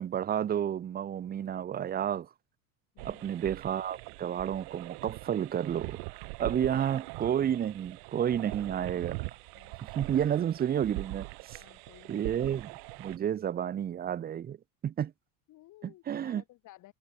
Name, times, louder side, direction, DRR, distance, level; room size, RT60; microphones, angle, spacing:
voice 1, 0.0-2.3 3.0-6.0 6.4-9.2 9.8-11.6 12.1-12.7 13.0-14.6 14.8-15.1 15.8-16.4, right 9 dB, 25° right, 0.8 m, -31 dB
voice 2, 2.9-3.3 8.3-8.5 9.5-9.8 11.5-12.4 15.5-16.9, left 16 dB, 55° left, 7.5 m, -56 dB
sound 1, 3.0-13.2, right 40 dB or more, 75° right, 3.7 m, -42 dB
cardioid pair, 135°, 37 cm